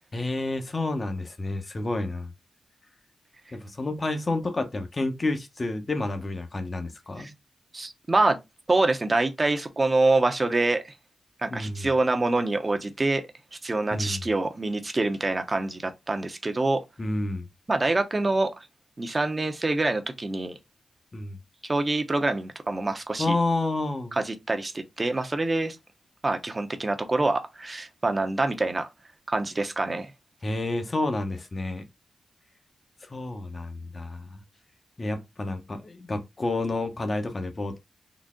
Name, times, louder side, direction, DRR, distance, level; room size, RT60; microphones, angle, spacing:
voice 1, 0.1-2.3 3.5-7.3 11.5-11.9 13.9-14.2 17.0-17.5 21.1-21.4 23.2-24.2 30.4-31.8 33.0-34.4 35.0-37.8, left 2 dB, 40° left, 0.9 m, -29 dB
voice 2, 7.7-8.4 8.7-10.9 11.4-13.2 13.6-16.8 17.7-18.7 19.0-20.6 21.6-23.4 24.2-25.8 26.2-28.9 29.3-30.1, right 2 dB, 35° right, 0.7 m, -25 dB
3.9 x 2.0 x 3.6 m
cardioid pair, 55°, 0 cm